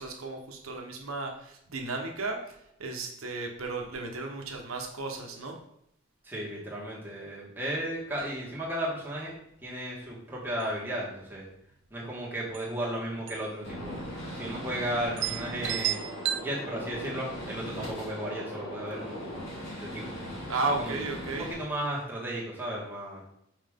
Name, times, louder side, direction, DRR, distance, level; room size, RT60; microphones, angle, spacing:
voice 1, 0.0-5.5 17.6-17.9 20.5-21.5, right 3 dB, 90° right, 2 dB, 1.0 m, -34 dB
voice 2, 6.2-9.4 9.6-11.5 11.9-13.9 14.3-16.0 16.3-19.4 19.8-20.1 20.8-21.0 21.4-23.2, right 1 dB, 10° right, -5 dB, 1.5 m, -34 dB
sound 1, 8.1-8.2 8.5-8.6 9.0-9.4 9.9-10.2 10.5-11.1 12.2-12.3 12.5-12.7 13.3-13.6 13.8-13.9 14.6-14.7 15.2-16.4, right 13 dB, 60° right, 0.3 m, -33 dB
Gunshot gunfire, 13.6-21.5, equal, 65° left, 2.5 m, -39 dB
5.6 x 4.8 x 3.6 m, 0.75 s
head